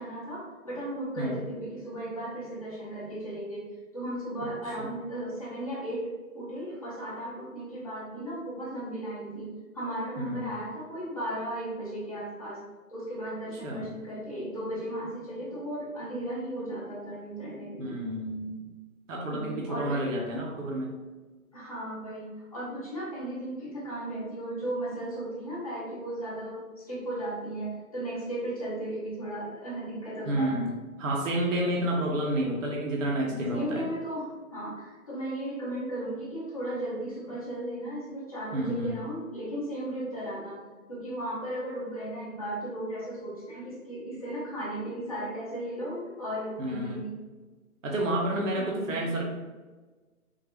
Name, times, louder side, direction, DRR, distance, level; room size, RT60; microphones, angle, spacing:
voice 1, 0.0-3.7 3.9-12.6 12.9-18.0 19.3-20.0 21.5-30.5 33.5-40.6 40.9-47.2 48.6-49.0, right 1 dB, 25° left, -8 dB, 0.8 m, -36 dB
voice 2, 10.2-10.5 13.6-13.8 17.8-18.6 19.1-20.9 30.3-30.7 31.0-33.8 38.5-39.0 46.6-47.1 47.8-49.2, right 1 dB, 60° right, -2 dB, 0.8 m, -30 dB
3.8 x 2.3 x 2.9 m, 1.3 s
hypercardioid pair, 170°, 44 cm